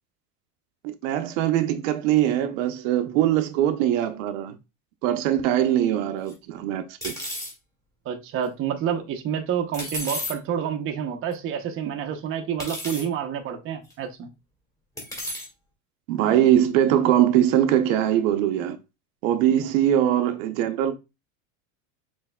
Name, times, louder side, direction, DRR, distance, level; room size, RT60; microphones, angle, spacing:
voice 1, 0.8-4.6 5.0-7.1 16.1-18.8 19.2-21.0, right 11 dB, 70° right, 0.8 m, -22 dB
sound 1, 6.3-6.4 7.0-7.5 9.7-10.3 11.3-11.4 12.6-13.1 13.9-14.0 15.0-15.5, left 1 dB, 10° left, 1.8 m, -32 dB
voice 2, 8.0-14.3 19.5-19.7, right 8 dB, 30° right, 0.7 m, -29 dB
6.4 x 3.3 x 2.2 m
supercardioid pair, 145°, 41 cm